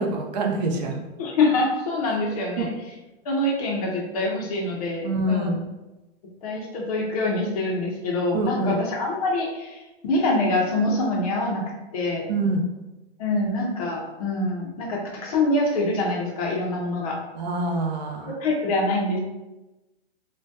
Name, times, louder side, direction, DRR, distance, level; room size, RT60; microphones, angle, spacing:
voice 1, 0.0-1.0 2.6-2.7 5.0-5.6 8.3-8.7 12.3-12.6 17.4-18.3, right 2 dB, 40° right, 1 dB, 0.5 m, -25 dB
voice 2, 1.2-2.7 3.2-5.5 6.4-11.6 11.9-12.3 13.2-17.2 18.2-19.2, left 2 dB, 35° left, -1 dB, 0.5 m, -25 dB
3.3 x 2.1 x 2.7 m, 1.0 s
hypercardioid pair, 155°, 33 cm